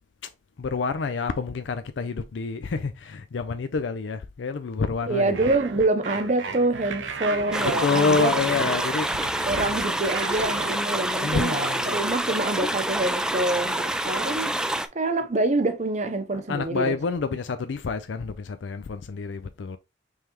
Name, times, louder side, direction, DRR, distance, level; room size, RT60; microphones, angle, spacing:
voice 1, 0.6-5.4 7.8-9.2 11.2-12.1 16.5-19.8, left 4 dB, 85° left, 0.4 m, -28 dB
voice 2, 5.1-8.3 8.8-8.9 9.5-14.5 14.9-17.0, right 2 dB, 40° right, 0.7 m, -26 dB
sound 1, 5.3-10.8, right 4 dB, 85° right, 0.8 m, -35 dB
sound 2, 7.5-14.9, right 1 dB, 5° right, 0.3 m, -27 dB
5.5 x 3.3 x 2.9 m
head